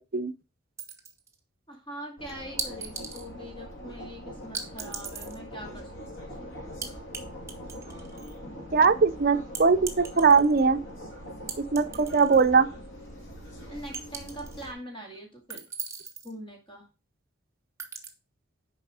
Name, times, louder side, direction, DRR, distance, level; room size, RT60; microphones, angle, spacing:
sound 1, 0.8-1.3 2.6-3.3 4.5-5.4 6.8-7.2 7.5-8.3 9.5-10.6 11.5-12.5 12.8-12.9 13.9-14.7 15.5-16.3 17.8-18.1, right 5 dB, 15° right, 0.9 m, -38 dB
voice 1, 1.7-5.9 6.2-6.5 13.7-15.6 16.2-16.9, equal, 25° left, 2.3 m, -42 dB
sound 2, 2.2-14.7, equal, 70° left, 2.3 m, -42 dB
voice 2, 8.7-10.8 11.6-12.7, right 5 dB, 45° right, 0.5 m, -21 dB
6.9 x 4.8 x 4.9 m
head